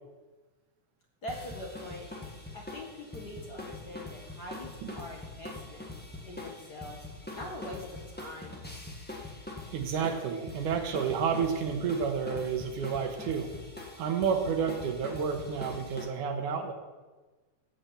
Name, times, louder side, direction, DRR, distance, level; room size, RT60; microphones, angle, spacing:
voice 1, 1.2-2.1 2.5-5.9 6.2-7.0 7.3-8.6, left 1 dB, 40° left, -1 dB, 1.9 m, -43 dB
sound 1, 1.3-16.0, left 2 dB, 10° left, 0.5 m, -43 dB
voice 2, 9.7-13.5 14.0-16.7, right 6 dB, 85° right, 5 dB, 2.7 m, -30 dB
16.0 x 5.9 x 7.0 m, 1.3 s
omnidirectional pair, 3.5 m